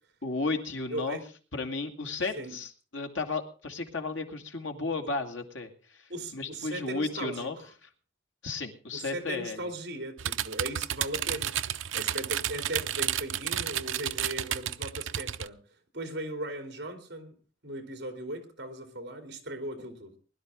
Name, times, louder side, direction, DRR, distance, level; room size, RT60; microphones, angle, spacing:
voice 1, 0.2-1.2 1.5-7.6 7.8-7.9 8.4-9.7, left 3 dB, 90° left, 4 dB, 2.3 m, -34 dB
voice 2, 0.9-1.2 2.3-2.5 6.1-7.5 8.9-11.5 11.9-15.6 15.9-17.3 17.6-20.1, right 1 dB, 55° right, 6 dB, 3.1 m, -38 dB
sound 1, 10.2-15.5, right 11 dB, 85° right, 0.6 m, -31 dB
21.0 x 12.0 x 3.7 m, 0.37 s
head